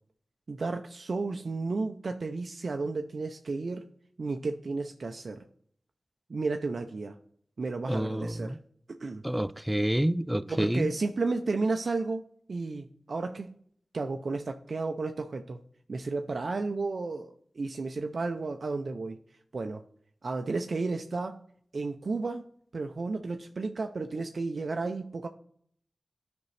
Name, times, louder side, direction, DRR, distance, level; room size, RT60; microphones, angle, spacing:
voice 1, 0.5-3.9 4.2-5.4 6.3-7.2 7.6-8.6 9.0-9.2 10.6-12.2 12.5-13.5 13.9-15.6 15.9-19.2 19.5-19.8 20.2-21.4 21.7-22.5 22.7-25.3, right 3 dB, 65° right, 0.5 m, -32 dB
voice 2, 7.9-8.6 9.2-10.9, right 1 dB, 10° right, 0.4 m, -28 dB
10.5 x 5.1 x 3.2 m
cardioid pair, 45°, 0 cm